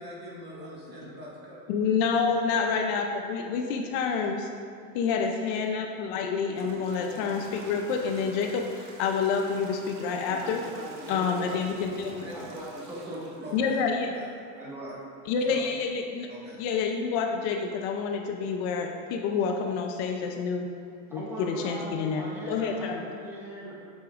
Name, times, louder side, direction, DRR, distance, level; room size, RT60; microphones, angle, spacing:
voice 1, 0.0-1.9 12.2-12.3 13.1-13.8 14.1-14.9 15.5-15.6 16.3-16.6, equal, 25° right, -5 dB, 1.7 m, -42 dB
voice 2, 1.7-4.5 4.9-10.6 11.1-12.3 13.5-14.1 15.3-16.3 16.6-20.7 21.1-23.0, left 5 dB, 55° left, 3 dB, 0.6 m, -28 dB
Toilet flush / Trickle dribble, 5.7-5.8 6.5-14.3, right 3 dB, 55° right, 1.1 m, -47 dB
voice 3, 10.0-11.5 11.9-13.8 14.5-14.9 15.3-15.5 21.1-23.7, equal, 5° right, -6 dB, 1.3 m, -41 dB
8.2 x 7.8 x 2.5 m, 2.4 s
supercardioid pair, 155°, 41 cm